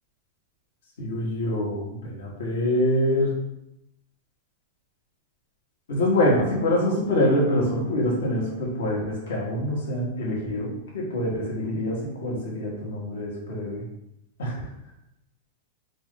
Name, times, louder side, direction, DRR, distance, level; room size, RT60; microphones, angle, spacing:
voice 1, 1.0-3.3 5.9-13.8 14.4-14.5, left 1 dB, 85° left, -3 dB, 1.4 m, -25 dB
4.3 x 2.6 x 3.7 m, 0.81 s
supercardioid pair, 150°, 0 cm